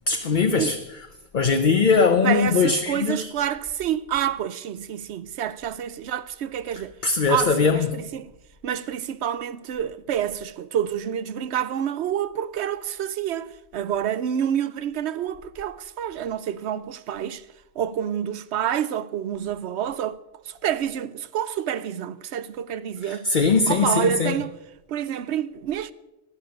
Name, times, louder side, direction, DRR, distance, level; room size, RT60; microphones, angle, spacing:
voice 1, 0.1-0.8 1.3-3.3 7.0-7.9 23.3-24.3, left 5 dB, 45° left, 0.9 m, -20 dB
voice 2, 2.2-8.3 8.6-17.4 17.8-20.2 20.4-23.3 23.7-24.6 24.9-25.9, right 9 dB, 75° right, 0.9 m, -28 dB
13.5 x 11.5 x 6.3 m
omnidirectional pair, 1.2 m